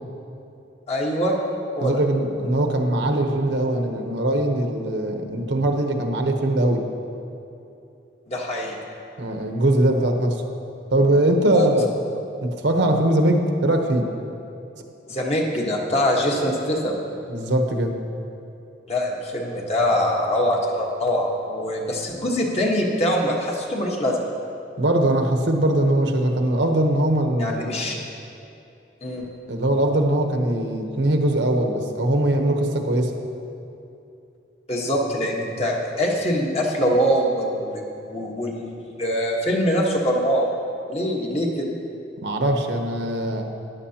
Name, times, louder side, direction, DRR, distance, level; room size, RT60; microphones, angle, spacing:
voice 1, 0.9-1.4 1.8-2.0 8.3-8.7 11.5-11.7 15.1-17.0 18.9-24.3 27.4-28.0 29.0-29.3 34.7-40.5 40.9-41.7, equal, 35° left, -1 dB, 1.2 m, -23 dB
voice 2, 1.8-6.9 9.2-10.4 10.9-11.9 12.4-14.1 17.3-18.0 24.8-27.9 29.5-33.1 42.2-43.4, right 1 dB, 80° right, 4 dB, 0.9 m, -21 dB
14.5 x 10.5 x 2.8 m, 2.8 s
head